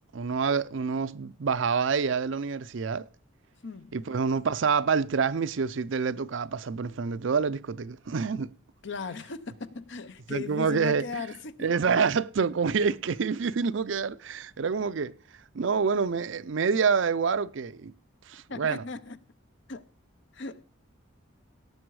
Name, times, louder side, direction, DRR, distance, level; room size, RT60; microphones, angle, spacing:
voice 1, 0.1-3.0 3.9-8.5 10.3-11.0 11.6-15.1 15.5-17.9 18.3-18.8, right 5 dB, 65° right, 0.5 m, -27 dB
voice 2, 3.6-4.0 8.8-11.7 13.4-13.5 18.5-19.3 19.7-19.9 20.3-20.6, left 4 dB, 60° left, 0.8 m, -38 dB
17.5 x 6.9 x 4.7 m
head